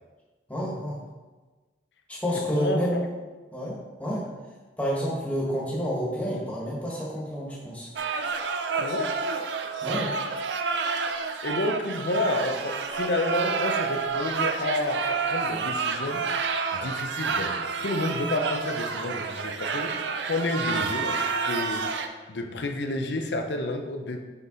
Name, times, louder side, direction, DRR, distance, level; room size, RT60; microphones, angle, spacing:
voice 1, 0.5-1.0 2.1-3.1 3.5-4.3 4.8-7.9 9.8-10.1, equal, 10° left, -5 dB, 1.6 m, -29 dB
voice 2, 2.5-3.0 8.8-9.1 11.4-16.3 16.7-17.6 17.8-21.2 21.4-21.9 22.3-24.2, left 2 dB, 80° left, 5 dB, 0.7 m, -30 dB
sound 1, 8.0-22.1, right 5 dB, 85° right, 0.5 m, -29 dB
6.0 x 5.8 x 4.0 m, 1.3 s
head